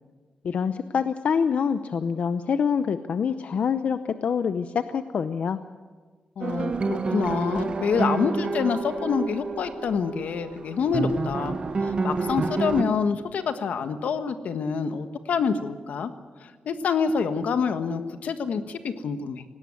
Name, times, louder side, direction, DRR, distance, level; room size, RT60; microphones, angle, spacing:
voice 1, 0.4-5.6, left 6 dB, 65° left, 11 dB, 0.7 m, -26 dB
voice 2, 6.4-16.1 16.4-19.4, left 6 dB, 90° left, 9 dB, 1.5 m, -27 dB
sound 1, 6.4-12.8, right 3 dB, 40° right, 1.6 m, -29 dB
18.5 x 17.5 x 9.5 m, 1.4 s
wide cardioid pair, 125°, 2 cm